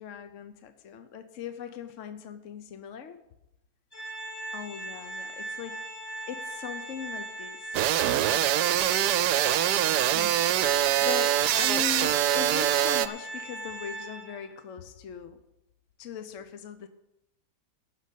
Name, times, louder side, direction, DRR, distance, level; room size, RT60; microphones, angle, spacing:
voice 1, 0.0-3.2 4.5-5.8 6.3-8.7 10.1-15.4 16.0-16.9, left 7 dB, 60° left, 9 dB, 0.9 m, -40 dB
Organ, 3.9-14.6, right 2 dB, 25° left, 1.3 m, -39 dB
sound 1, 7.7-13.1, right 12 dB, 75° right, 1.1 m, -24 dB
11.5 x 6.6 x 8.2 m, 0.89 s
omnidirectional pair, 1.8 m